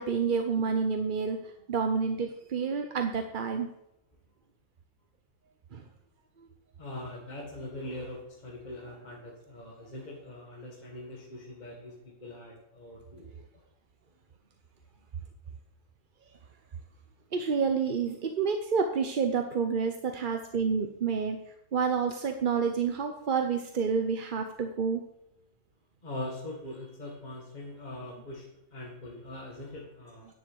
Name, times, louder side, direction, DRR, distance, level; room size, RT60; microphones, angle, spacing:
voice 1, 0.0-3.7 5.7-5.8 6.4-6.5 17.3-21.4 21.7-25.0, right 5 dB, 40° right, 5 dB, 0.8 m, -29 dB
voice 2, 6.8-13.4 26.0-30.3, left 1 dB, 30° left, -2 dB, 2.0 m, -42 dB
10.0 x 7.2 x 7.9 m, 0.84 s
omnidirectional pair, 1.5 m